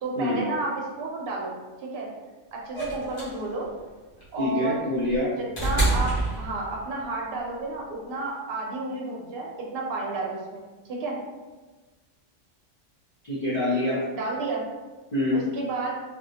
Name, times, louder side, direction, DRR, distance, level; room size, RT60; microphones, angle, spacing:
voice 1, 0.0-1.5 1.9-2.1 2.5-3.7 4.3-4.9 5.6-6.1 6.4-10.6 10.9-11.2 14.1-14.6 15.3-15.9, right 3 dB, 55° right, -2 dB, 0.8 m, -31 dB
sound 1, 2.7-7.0 8.3-8.4, right 2 dB, 75° left, 1.5 m, -28 dB
voice 2, 4.4-5.3 13.2-14.0 15.1-15.4, left 1 dB, 40° left, -10 dB, 0.7 m, -25 dB
3.4 x 2.1 x 2.7 m, 1.3 s
omnidirectional pair, 1.3 m